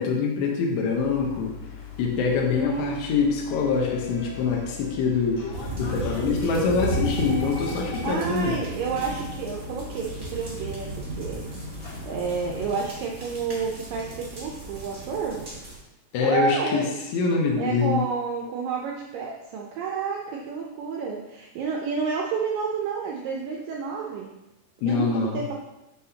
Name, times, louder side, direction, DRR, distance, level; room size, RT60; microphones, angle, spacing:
voice 1, 0.0-1.5 2.0-5.5 5.8-8.6 16.1-16.9 17.1-18.0 24.8-25.4, left 5 dB, 80° left, 0 dB, 3.1 m, -24 dB
sound 1, 0.9-12.7, left 5 dB, 50° left, 2.7 m, -40 dB
voice 2, 2.6-3.0 8.0-11.5 12.1-15.4 16.2-16.9 17.6-24.3 24.9-25.5, right 5 dB, 90° right, -1 dB, 1.9 m, -30 dB
sound 2, 5.5-15.8, right 2 dB, 35° right, 1.2 m, -35 dB
9.9 x 5.6 x 2.8 m, 0.96 s
omnidirectional pair, 4.8 m